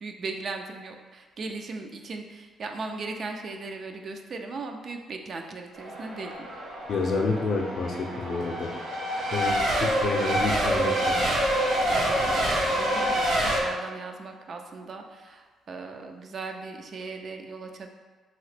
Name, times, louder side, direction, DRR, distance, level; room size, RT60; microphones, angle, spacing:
voice 1, 0.0-6.5 11.9-17.9, right 3 dB, 55° right, 4 dB, 0.3 m, -38 dB
Race car auto racing / Accelerating revving vroom / Mechanisms, 5.7-13.6, right 1 dB, 75° right, 0.7 m, -26 dB
voice 2, 6.9-8.8 9.3-11.1, left 4 dB, 60° left, 0 dB, 0.5 m, -29 dB
2.9 x 2.8 x 3.2 m, 1.4 s
cardioid pair, 90°, 0 cm